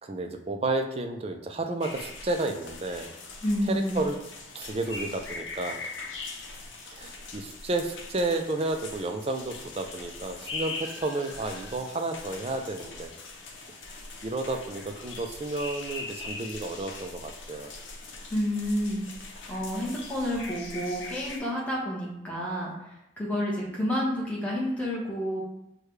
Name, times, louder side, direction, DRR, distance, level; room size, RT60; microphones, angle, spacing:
voice 1, 0.0-3.1 3.7-4.2 4.5-5.8 6.9-13.1 14.2-17.7, right 2 dB, 30° right, 4 dB, 0.4 m, -31 dB
sound 1, 1.8-21.4, left 3 dB, 75° left, 0.7 m, -41 dB
voice 2, 3.4-4.0 18.3-19.0 19.5-22.7 23.2-25.4, equal, 5° left, -6 dB, 1.0 m, -29 dB
6.4 x 2.2 x 3.2 m, 0.84 s
head